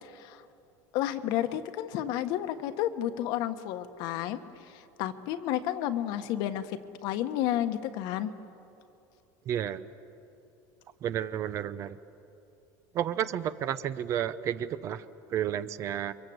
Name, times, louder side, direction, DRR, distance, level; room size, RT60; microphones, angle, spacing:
voice 1, 0.0-0.4 0.9-8.3, left 12 dB, 55° left, 9 dB, 1.4 m, -31 dB
voice 2, 9.5-9.8 11.0-12.0 12.9-16.1, right 10 dB, 35° right, 14 dB, 0.8 m, -31 dB
29.5 x 24.0 x 8.0 m, 2.7 s
cardioid pair, 160°, 9 cm